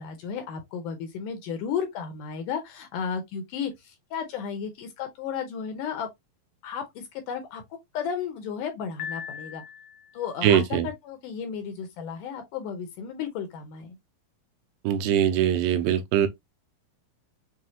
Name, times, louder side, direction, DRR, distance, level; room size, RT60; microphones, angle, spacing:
voice 1, 0.0-6.1 6.6-7.6 7.9-9.6 10.1-14.0, left 7 dB, 75° left, 2.1 m, -33 dB
Piano, 9.0-10.3, left 8 dB, 90° left, 2.5 m, -38 dB
voice 2, 10.4-10.9 14.8-16.3, right 10 dB, 80° right, 2.3 m, -22 dB
6.3 x 2.3 x 2.8 m
omnidirectional pair, 4.2 m